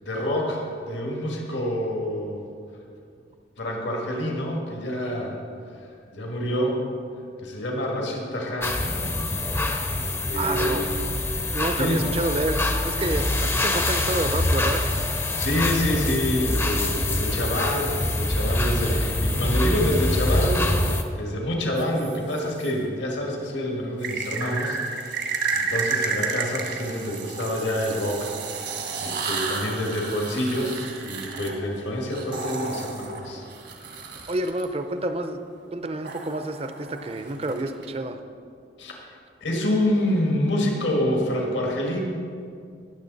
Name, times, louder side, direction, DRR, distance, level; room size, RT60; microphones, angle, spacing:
voice 1, 0.0-2.5 3.6-5.4 6.1-6.8 7.4-8.8 9.5-10.9 11.4-12.1 15.2-33.4 38.8-38.9 39.4-42.0, left 1 dB, 85° left, -1 dB, 1.9 m, -27 dB
sound 1, 8.6-21.0, left 2 dB, 15° left, 0.6 m, -25 dB
voice 2, 10.4-10.9 11.5-14.8 34.3-35.4 35.7-38.2, right 2 dB, 35° right, 8 dB, 0.6 m, -29 dB
sound 2, 21.8-22.7 24.0-34.6 36.0-37.9, right 4 dB, 65° right, 1.5 m, -32 dB
19.0 x 7.1 x 4.1 m, 2.4 s
head